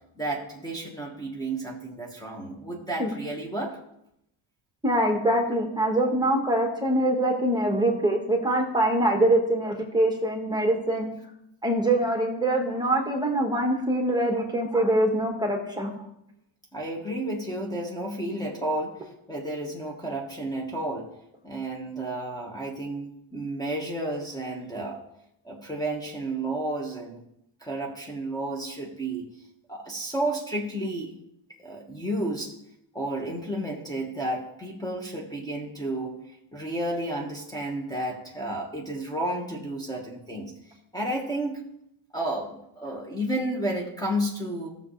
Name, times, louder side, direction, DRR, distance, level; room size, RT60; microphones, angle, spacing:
voice 1, 0.2-3.8 16.7-21.1 21.4-25.0 25.4-27.2 27.6-29.3 29.7-31.2 31.6-32.5 32.9-36.2 36.5-40.5 40.9-41.6 42.1-44.7, right 1 dB, 10° left, -1 dB, 1.5 m, -32 dB
voice 2, 4.8-11.1 11.6-15.9, right 1 dB, 10° right, 1 dB, 1.7 m, -24 dB
15.0 x 6.9 x 3.3 m, 0.78 s
cardioid pair, 120°, 48 cm